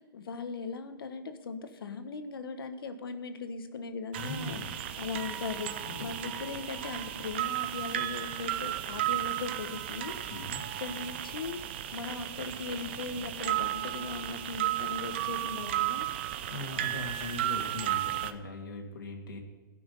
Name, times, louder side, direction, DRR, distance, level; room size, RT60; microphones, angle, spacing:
voice 1, 0.0-4.6 5.0-10.2 10.8-11.6 11.9-16.1, left 4 dB, 85° left, 8 dB, 1.3 m, -39 dB
voice 2, 4.1-4.8 5.9-6.1 10.3-10.6 16.5-19.4, left 2 dB, 70° left, 2 dB, 2.5 m, -40 dB
sound 1, 4.1-18.3, right 13 dB, 30° right, 0.5 m, -34 dB
15.5 x 6.2 x 5.4 m, 1.4 s
hypercardioid pair, 180°, 12 cm